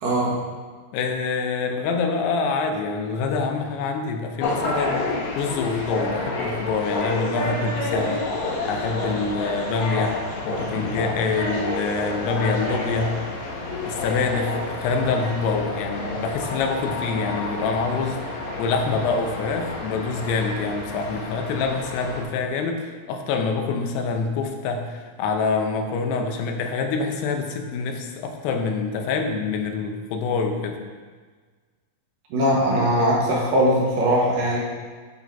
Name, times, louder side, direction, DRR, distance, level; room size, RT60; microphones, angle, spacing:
voice 1, 0.0-0.4 32.3-34.6, equal, 65° right, -5 dB, 2.8 m, -20 dB
voice 2, 0.9-5.1 5.4-13.2 13.9-18.2 18.6-30.8, left 4 dB, 90° left, 4 dB, 2.9 m, -26 dB
sound 1, 4.4-22.2, left 2 dB, 65° left, 1.9 m, -29 dB
9.3 x 4.2 x 4.6 m, 1.5 s
omnidirectional pair, 4.6 m